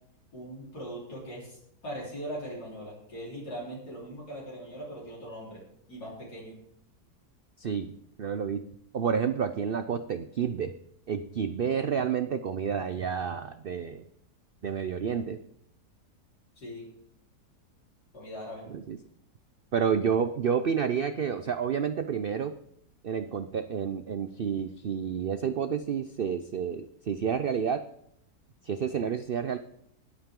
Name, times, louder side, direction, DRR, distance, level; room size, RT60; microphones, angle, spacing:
voice 1, 0.3-5.6 5.9-6.6 16.6-16.9 18.1-18.6, equal, 75° left, -5 dB, 4.6 m, -40 dB
voice 2, 7.6-7.9 8.2-8.7 8.9-10.7 11.1-14.0 14.6-15.4 18.7-19.0 19.7-22.6 23.0-27.8 28.6-29.6, right 7 dB, 90° right, 10 dB, 0.4 m, -29 dB
21.0 x 8.8 x 3.7 m, 0.71 s
omnidirectional pair, 1.7 m